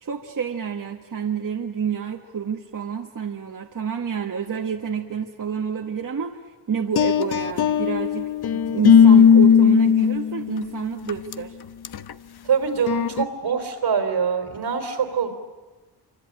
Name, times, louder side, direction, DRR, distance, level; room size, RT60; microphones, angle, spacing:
voice 1, 0.0-11.6, right 7 dB, 50° right, 3 dB, 1.5 m, -29 dB
sound 1, 7.0-10.6 11.1-11.3 11.8-12.1 12.9-13.2, left 7 dB, 70° left, 0.9 m, -16 dB
voice 2, 12.5-15.3, right 6 dB, 80° right, 6 dB, 3.7 m, -24 dB
26.0 x 25.0 x 8.8 m, 1.2 s
cardioid pair, 80°, 40 cm